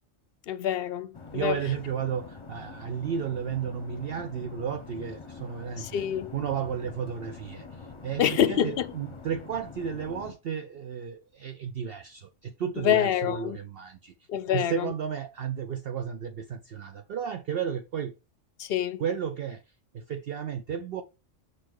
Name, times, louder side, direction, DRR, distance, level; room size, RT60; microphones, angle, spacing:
voice 1, 0.5-1.6 5.8-6.3 8.2-8.9 12.8-13.6 14.3-14.9 18.6-19.0, left 9 dB, 60° left, 0.7 m, -26 dB
sound 1, 1.1-10.3, left 4 dB, 25° left, 0.8 m, -45 dB
voice 2, 1.3-6.0 6.3-14.1 14.5-18.1 19.0-19.6 19.9-21.0, right 7 dB, 60° right, 0.7 m, -33 dB
6.3 x 4.1 x 4.6 m
omnidirectional pair, 1.3 m